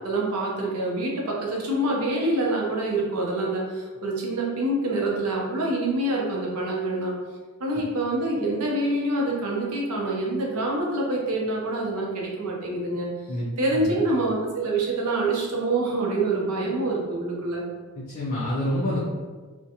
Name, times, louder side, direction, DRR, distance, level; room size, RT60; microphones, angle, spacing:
voice 1, 0.0-7.1 7.6-13.1 13.6-17.6, right 2 dB, 90° right, -2 dB, 0.6 m, -26 dB
voice 2, 18.1-19.0, left 1 dB, 40° left, -7 dB, 0.4 m, -27 dB
2.5 x 2.1 x 2.7 m, 1.4 s
head